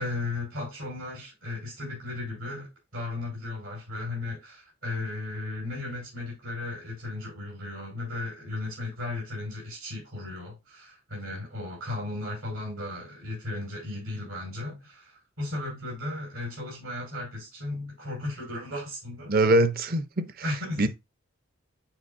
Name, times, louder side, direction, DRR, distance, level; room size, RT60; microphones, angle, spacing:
voice 1, 0.0-19.5 20.4-20.9, left 2 dB, 85° right, 4.8 m, -35 dB
voice 2, 19.3-20.3 20.8-20.9, right 1 dB, 45° right, 0.6 m, -22 dB
9.0 x 4.7 x 2.6 m
head